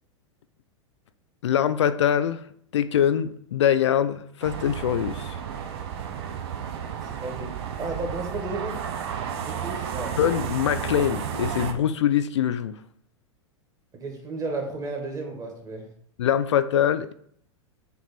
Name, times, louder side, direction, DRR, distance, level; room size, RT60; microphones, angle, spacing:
voice 1, 1.4-2.4 2.7-5.4 10.2-12.8 16.2-17.1, left 9 dB, 65° left, 12 dB, 0.4 m, -23 dB
sound 1, 4.4-11.7, right 8 dB, 55° right, 0.8 m, -32 dB
voice 2, 6.9-8.8 9.3-10.2 13.9-15.9, right 3 dB, 20° right, 3 dB, 1.6 m, -33 dB
8.1 x 3.0 x 4.2 m, 0.65 s
figure-of-eight pair, 100°, 16 cm